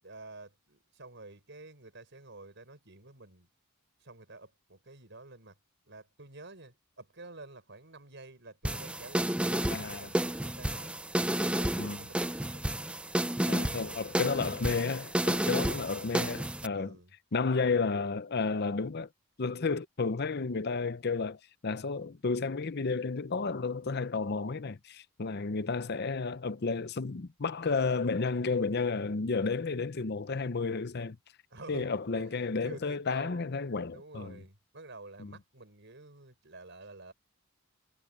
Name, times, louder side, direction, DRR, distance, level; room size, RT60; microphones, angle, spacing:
voice 1, 0.0-3.5 4.0-5.6 5.9-10.9 11.5-12.7 15.5-15.9 16.7-17.1 31.5-33.5 33.9-37.1, right 2 dB, 60° right, 5.8 m, -50 dB
sound 1, 8.7-16.7, right 1 dB, 5° right, 0.6 m, -31 dB
voice 2, 9.7-10.1 11.8-12.0 13.5-17.0 17.3-19.1 19.4-31.2 31.7-34.4 35.2-35.3, left 4 dB, 50° left, 0.7 m, -32 dB
head